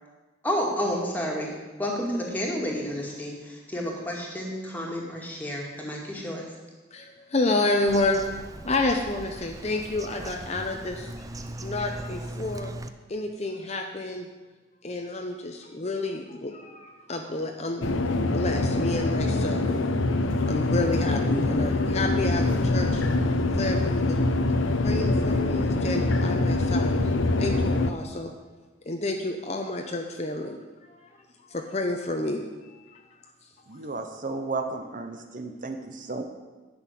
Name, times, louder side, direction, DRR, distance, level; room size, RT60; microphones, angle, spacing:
voice 1, 0.4-6.5, equal, 10° left, -2 dB, 2.3 m, -30 dB
voice 2, 6.9-8.2 8.6-11.2 11.6-12.7 13.1-14.3 14.8-19.8 20.4-23.0 23.6-24.2 24.8-27.0 27.4-28.3 28.9-30.6 30.9-31.1 31.4-32.4, left 2 dB, 35° left, 3 dB, 0.8 m, -30 dB
Bird vocalization bird call bird song, 7.9-12.9, right 1 dB, 15° right, 0.5 m, -39 dB
sound 1, 17.8-27.9, left 2 dB, 80° left, 0.8 m, -24 dB
voice 3, 33.7-36.2, right 3 dB, 40° right, 6 dB, 0.8 m, -33 dB
11.0 x 6.3 x 9.1 m, 1.3 s
head